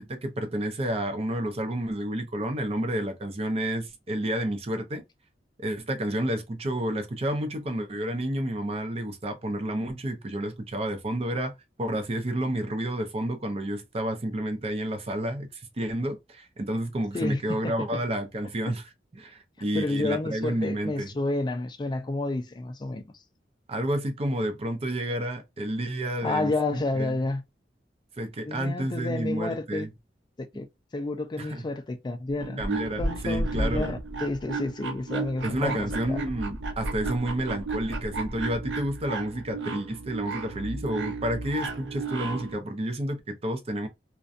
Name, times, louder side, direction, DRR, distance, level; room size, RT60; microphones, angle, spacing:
voice 1, 0.0-5.0 5.6-18.9 19.1-21.1 23.7-27.2 28.2-29.9 31.4-31.6 32.6-34.0 35.4-43.9, right 1 dB, 35° right, 0.5 m, -30 dB
voice 2, 17.1-18.0 19.7-23.1 26.2-27.4 28.5-29.9 30.4-30.7 30.9-32.6 33.0-36.2, left 2 dB, 25° left, 0.3 m, -30 dB
sound 1, 32.3-42.5, right 2 dB, 80° right, 0.6 m, -33 dB
2.6 x 2.2 x 2.4 m
head